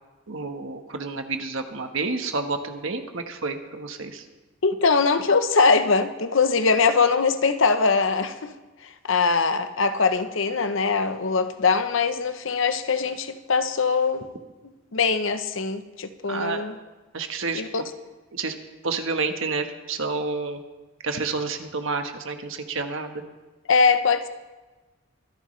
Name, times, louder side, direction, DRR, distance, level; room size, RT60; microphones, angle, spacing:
voice 1, 0.3-4.2 16.3-16.7 17.1-17.6 18.3-18.5 18.8-20.6 21.0-23.2, right 4 dB, 65° right, 6 dB, 1.3 m, -29 dB
voice 2, 4.6-8.5 9.1-14.3 14.9-16.8 17.5-17.8 23.7-24.3, left 4 dB, 65° left, 10 dB, 0.8 m, -22 dB
24.0 x 10.5 x 3.2 m, 1.2 s
head